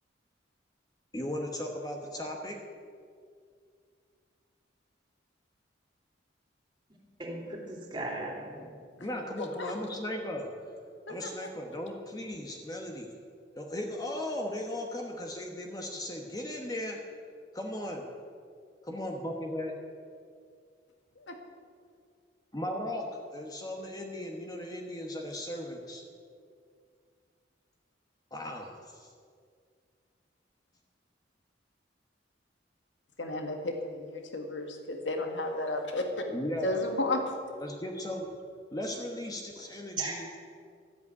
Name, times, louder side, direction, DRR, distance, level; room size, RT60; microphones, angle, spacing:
voice 1, 1.1-2.6 9.0-10.5 11.1-13.1 13.5-17.0 17.5-18.0 18.8-19.7 22.5-26.0 28.3-29.1 36.3-36.7 37.6-38.3 38.7-40.3, left 1 dB, 20° left, 1 dB, 1.1 m, -37 dB
voice 2, 7.2-8.8 40.0-40.3, right 2 dB, 25° right, -1 dB, 3.0 m, -37 dB
voice 3, 9.4-9.7 11.1-11.3 21.2-21.4 33.2-36.0 36.6-37.3, left 2 dB, 75° left, 3 dB, 1.8 m, -33 dB
13.5 x 8.2 x 9.5 m, 2.2 s
head